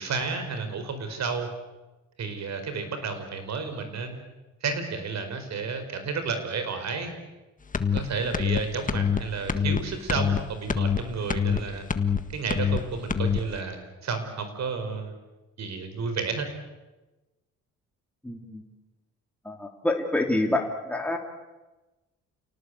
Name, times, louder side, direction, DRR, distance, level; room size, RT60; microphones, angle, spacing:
voice 1, 0.0-1.5 2.2-4.2 4.6-7.1 7.9-11.9 12.3-15.1 15.6-16.5, right 4 dB, 60° right, 8 dB, 5.0 m, -31 dB
sound 1, 7.7-8.0 8.3-8.6 8.9-9.2 9.5-9.8 10.1-10.4 10.7-11.0 11.3-11.6 11.9-12.2 12.5-12.8 13.1-13.4, left 6 dB, 25° left, 1.6 m, -24 dB
voice 2, 18.2-18.6 19.4-21.2, left 1 dB, 5° left, 1 dB, 2.9 m, -27 dB
29.0 x 18.5 x 8.4 m, 1.1 s
cardioid pair, 90°, 30 cm